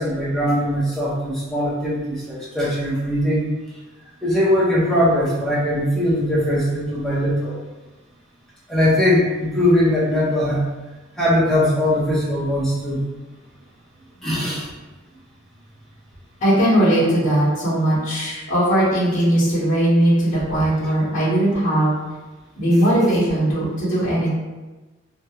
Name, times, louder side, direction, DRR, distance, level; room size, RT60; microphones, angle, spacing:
voice 1, 0.0-3.4 4.2-7.6 8.7-10.6 11.2-13.0 14.2-14.7, left 1 dB, ahead, -7 dB, 0.6 m, -20 dB
voice 2, 16.4-21.9 22.6-24.3, right 1 dB, 40° left, -11 dB, 0.9 m, -19 dB
2.3 x 2.2 x 2.8 m, 1.2 s
head